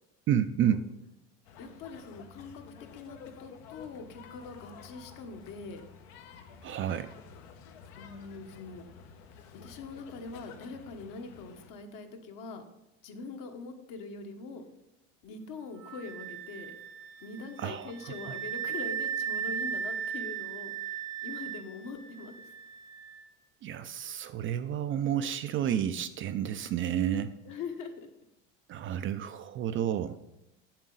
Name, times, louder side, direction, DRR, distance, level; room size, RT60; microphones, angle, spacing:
voice 1, 0.3-0.8 6.6-7.1 17.6-17.9 23.6-27.3 28.7-30.2, right 9 dB, 35° right, 10 dB, 0.4 m, -30 dB
sound 1, 1.4-11.7, left 7 dB, 75° left, 1.0 m, -51 dB
voice 2, 1.6-2.6 2.9-5.8 8.0-8.8 9.5-12.6 13.0-14.6 15.2-16.7 17.2-20.7 21.2-22.4 27.4-28.1, left 4 dB, 55° left, 5 dB, 1.2 m, -43 dB
Wind instrument woodwind instrument, 15.8-23.2, right 8 dB, 80° right, 1.0 m, -37 dB
7.5 x 7.2 x 3.9 m, 0.91 s
supercardioid pair, 110°, 38 cm